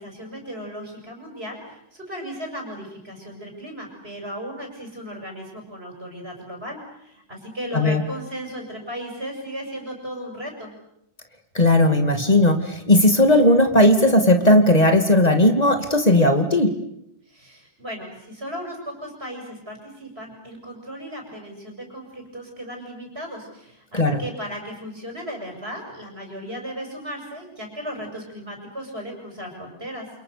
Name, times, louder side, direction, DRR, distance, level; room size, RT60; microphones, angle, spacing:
voice 1, 0.0-10.7 17.3-30.1, equal, 70° right, 1 dB, 7.0 m, -36 dB
voice 2, 11.5-16.8 23.9-24.2, left 1 dB, 40° left, 6 dB, 2.7 m, -16 dB
30.0 x 27.0 x 6.8 m, 0.79 s
omnidirectional pair, 1.1 m